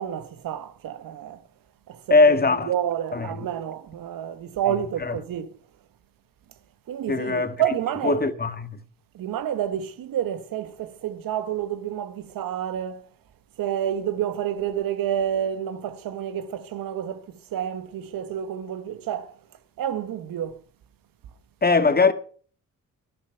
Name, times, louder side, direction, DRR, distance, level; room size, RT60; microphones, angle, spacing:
voice 1, 0.0-1.4 1.9-2.4 2.6-5.5 6.9-8.2 9.1-13.0 13.6-19.3 19.8-20.6, right 10 dB, 75° right, 1.3 m, -29 dB
voice 2, 2.1-2.7 3.1-3.3 5.0-5.1 7.1-7.6 8.0-8.8 21.6-22.1, left 3 dB, 25° left, 1.7 m, -20 dB
12.0 x 11.0 x 5.6 m
supercardioid pair, 60°, 34 cm